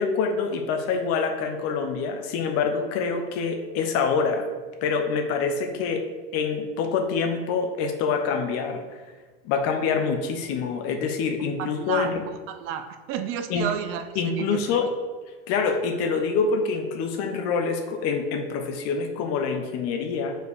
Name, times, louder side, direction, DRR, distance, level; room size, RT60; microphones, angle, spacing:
voice 1, 0.0-4.5 4.8-6.0 6.3-9.0 9.4-12.2 13.5-13.7 14.1-14.9 15.5-20.4, left 5 dB, 55° left, 5 dB, 1.0 m, -26 dB
voice 2, 11.6-12.1 12.5-14.6, right 9 dB, 50° right, 9 dB, 0.6 m, -31 dB
5.1 x 4.7 x 4.8 m, 1.3 s
supercardioid pair, 115°, 29 cm